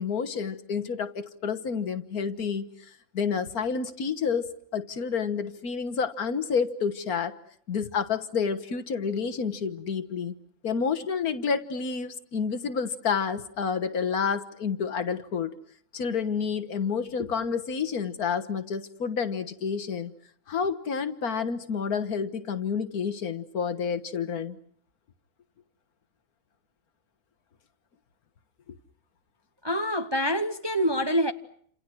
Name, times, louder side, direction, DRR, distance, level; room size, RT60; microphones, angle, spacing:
voice 1, 0.0-2.7 3.1-7.4 7.7-10.4 10.6-15.5 15.9-20.1 20.5-24.6, left 6 dB, 70° left, 1.9 m, -29 dB
voice 2, 29.6-31.3, equal, 20° right, 0.9 m, -26 dB
29.5 x 27.5 x 6.2 m
omnidirectional pair, 1.6 m